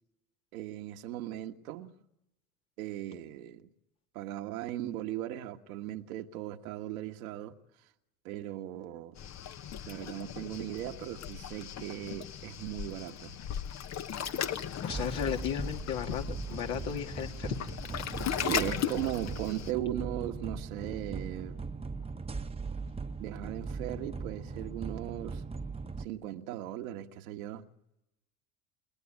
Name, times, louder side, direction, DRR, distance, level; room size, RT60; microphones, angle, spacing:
voice 1, 0.5-1.9 2.8-3.7 4.1-7.5 8.2-9.2 9.9-13.4 18.4-21.6 23.2-25.4 26.0-27.7, right 13 dB, 75° right, 1.8 m, -38 dB
Waves surf, 9.2-19.7, left 9 dB, 40° left, 1.0 m, -38 dB
sound 1, 14.2-26.1, right 4 dB, 15° right, 1.1 m, -39 dB
voice 2, 14.8-17.6 17.9-18.2, left 9 dB, 65° left, 2.7 m, -35 dB
29.5 x 20.0 x 9.1 m
hypercardioid pair, 70°, 43 cm